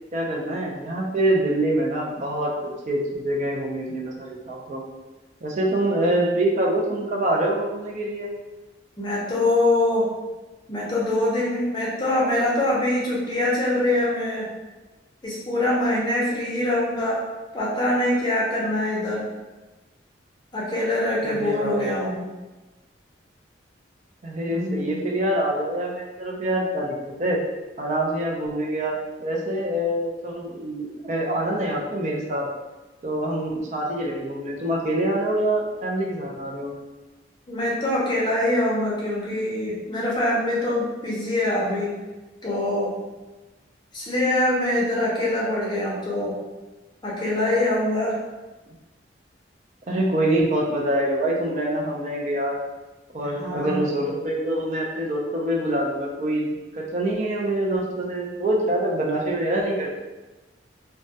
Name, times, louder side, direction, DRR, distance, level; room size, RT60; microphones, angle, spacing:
voice 1, 0.1-4.8 5.4-8.3 21.2-22.1 24.2-27.4 27.8-32.5 33.0-36.7 49.9-52.6 53.1-59.9, right 1 dB, 40° right, -2 dB, 0.4 m, -25 dB
voice 2, 9.0-10.1 10.7-14.5 15.2-17.2 17.5-19.2 20.5-22.2 24.5-25.0 37.5-41.9 42.4-42.9 43.9-46.3 47.0-48.1 53.2-53.9, left 1 dB, 25° left, -6 dB, 0.5 m, -24 dB
2.2 x 2.1 x 2.6 m, 1.1 s
head